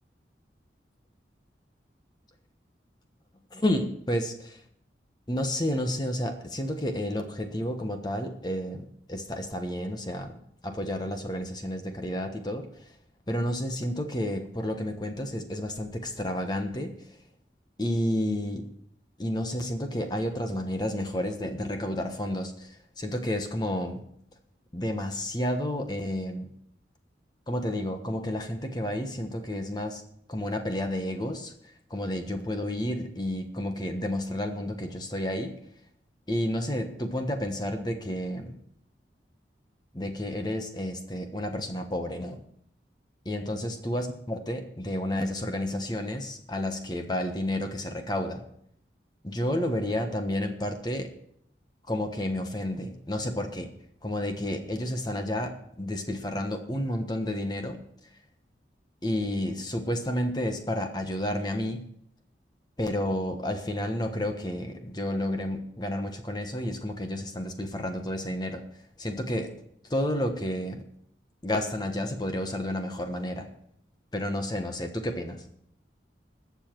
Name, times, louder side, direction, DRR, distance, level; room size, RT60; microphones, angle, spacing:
voice 1, 3.5-4.6 5.3-10.4 10.6-12.9 13.3-16.9 17.8-18.6 19.2-24.0 24.7-26.5 27.5-30.0 30.3-31.5 31.9-35.5 36.3-38.6 39.9-42.4 43.2-48.4 49.2-51.1 51.9-53.7 54.0-57.8 59.0-61.8 62.8-68.6 69.0-69.5 69.9-70.8 71.4-73.5 74.1-75.4, left 1 dB, 25° left, 5 dB, 1.2 m, -31 dB
20.5 x 7.1 x 4.6 m, 0.69 s
head